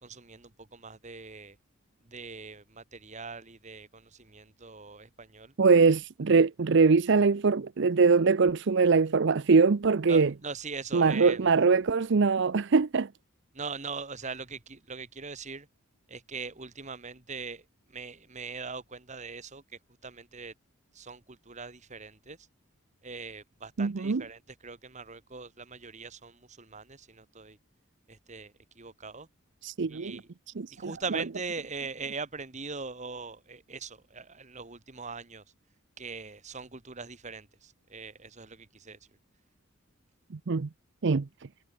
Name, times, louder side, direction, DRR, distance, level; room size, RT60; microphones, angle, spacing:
voice 1, 0.0-1.6 2.1-5.5 10.1-11.4 13.5-15.7 16.1-19.6 20.0-20.5 20.9-22.4 23.0-27.6 28.1-29.3 29.9-30.3 30.7-35.4 36.0-39.0, right 4 dB, 35° right, 1.8 m, -41 dB
voice 2, 5.6-10.3 10.9-13.1 23.8-24.2 29.6-30.2 30.6-30.9 40.5-40.7 41.0-41.3, right 4 dB, 55° right, 0.5 m, -23 dB
head